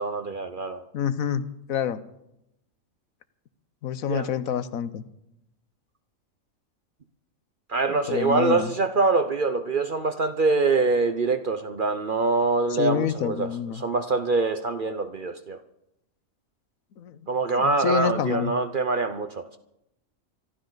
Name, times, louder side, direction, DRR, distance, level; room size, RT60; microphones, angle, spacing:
voice 1, 0.0-0.8 4.1-4.3 7.7-15.6 17.3-19.6, right 3 dB, 45° right, 9 dB, 0.8 m, -24 dB
voice 2, 0.9-2.0 3.8-5.0 8.1-8.7 12.7-13.8 17.0-17.2 17.6-18.5, left 8 dB, 90° left, 13 dB, 1.3 m, -27 dB
25.0 x 13.0 x 4.0 m, 0.84 s
omnidirectional pair, 1.4 m